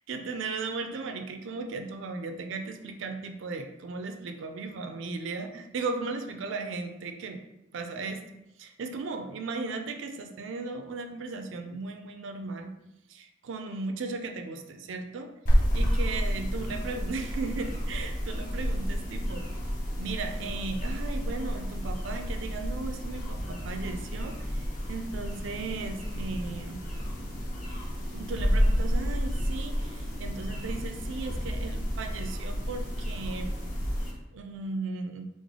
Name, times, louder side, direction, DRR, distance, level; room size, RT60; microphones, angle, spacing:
voice 1, 0.1-7.4 7.7-8.2 8.6-12.7 13.1-15.3 15.7-19.5 20.0-26.8 28.1-33.6 34.3-35.3, right 3 dB, 70° right, 5 dB, 0.4 m, -36 dB
sound 1, 15.5-34.1, equal, 40° left, 0.6 m, -30 dB
3.2 x 2.1 x 3.6 m, 0.89 s
head